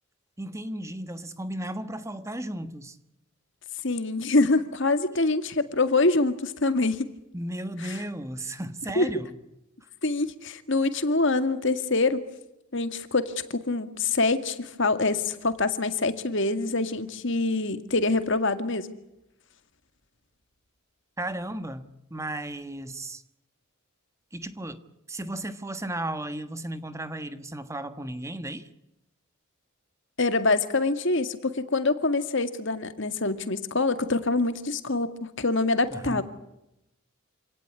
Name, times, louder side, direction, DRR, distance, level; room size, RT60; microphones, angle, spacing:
voice 1, 0.4-3.0 7.3-9.4 21.2-23.2 24.3-24.8 25.1-28.7 35.9-36.2, right 1 dB, 15° right, 10 dB, 1.4 m, -35 dB
voice 2, 3.8-7.1 9.0-9.1 10.0-12.2 12.7-18.9 30.2-36.2, left 3 dB, 60° left, 10 dB, 2.0 m, -25 dB
28.0 x 17.5 x 9.7 m, 0.87 s
head